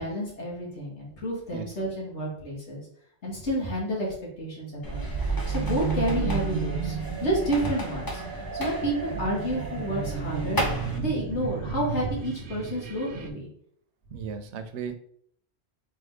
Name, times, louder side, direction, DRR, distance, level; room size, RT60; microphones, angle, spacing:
voice 1, 0.0-2.8 3.2-4.1 4.4-10.6 11.0-13.5, right 1 dB, 90° left, -4 dB, 2.0 m, -30 dB
sound 1, 4.8-11.0, equal, 25° left, 0.7 m, -35 dB
sound 2, 4.9-13.3, right 6 dB, 60° right, 0.7 m, -33 dB
voice 2, 14.1-15.0, right 6 dB, 85° right, 9 dB, 0.9 m, -35 dB
3.6 x 3.6 x 3.5 m, 0.63 s
omnidirectional pair, 1.1 m